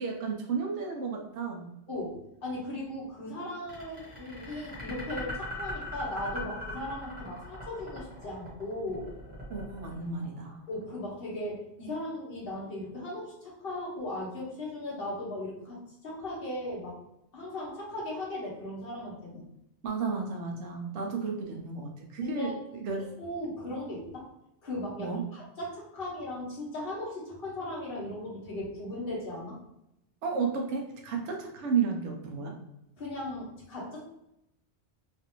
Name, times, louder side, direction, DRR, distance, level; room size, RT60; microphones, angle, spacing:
voice 1, 0.0-1.7 9.5-10.6 19.8-23.0 25.0-25.2 30.2-32.5, right 5 dB, 85° right, 1 dB, 0.9 m, -32 dB
voice 2, 1.9-9.1 10.7-17.0 17.3-19.4 22.2-22.5 23.2-24.2 24.6-29.6 33.0-34.0, left 1 dB, 50° left, -7 dB, 1.4 m, -37 dB
sound 1, 3.7-10.8, left 1 dB, 10° right, 1.1 m, -41 dB
3.2 x 2.5 x 2.9 m, 0.84 s
omnidirectional pair, 1.2 m